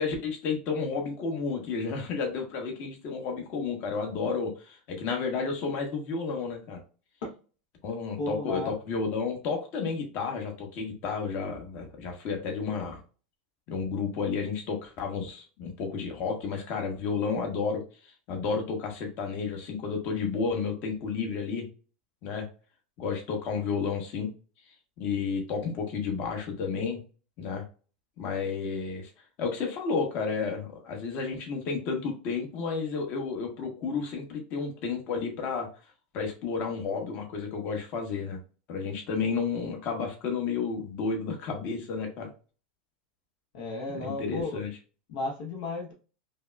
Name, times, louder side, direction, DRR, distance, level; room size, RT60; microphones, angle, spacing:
voice 1, 0.0-6.8 7.8-13.0 13.7-21.7 22.2-22.5 23.0-24.3 25.0-27.0 27.4-27.6 28.2-29.1 29.4-35.7 36.1-38.4 38.7-42.3 43.9-44.7, left 5 dB, 40° left, 2 dB, 1.1 m, -31 dB
voice 2, 8.2-8.7 43.5-44.6 45.1-45.9, left 2 dB, 65° left, 0 dB, 0.9 m, -34 dB
5.1 x 2.1 x 2.3 m, 0.36 s
supercardioid pair, 140°, 5 cm